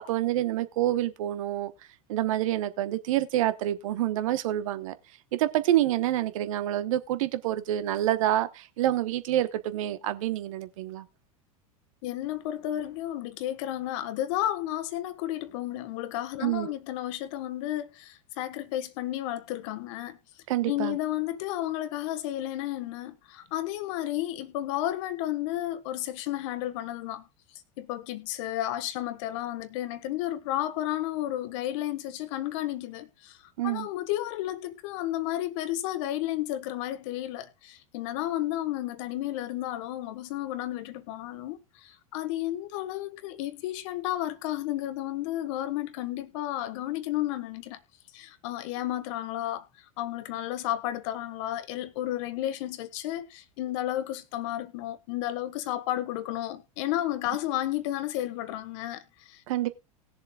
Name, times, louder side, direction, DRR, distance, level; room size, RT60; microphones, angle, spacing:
voice 1, 0.1-1.7 2.1-4.9 5.3-11.0 16.4-16.7 20.5-21.0 33.6-33.9 59.5-59.7, right 13 dB, 65° right, 1.1 m, -27 dB
voice 2, 12.0-20.2 20.7-27.2 27.8-33.4 33.6-47.8 48.1-49.6 50.0-59.4, left 13 dB, 55° left, 1.4 m, -32 dB
19.5 x 7.2 x 2.3 m
figure-of-eight pair, 85°, 19 cm